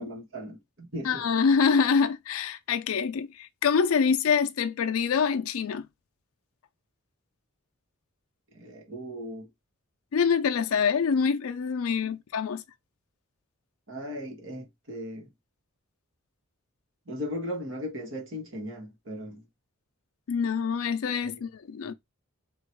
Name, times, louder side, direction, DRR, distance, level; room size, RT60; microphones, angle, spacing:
voice 1, 0.0-1.3 8.5-9.5 12.0-12.1 13.9-15.3 17.1-19.4 21.2-21.3 21.8-21.9, equal, 60° right, 1.6 m, -37 dB
voice 2, 1.0-5.9 10.1-12.6 20.3-21.9, left 6 dB, 80° left, 0.4 m, -25 dB
3.8 x 2.4 x 4.4 m
head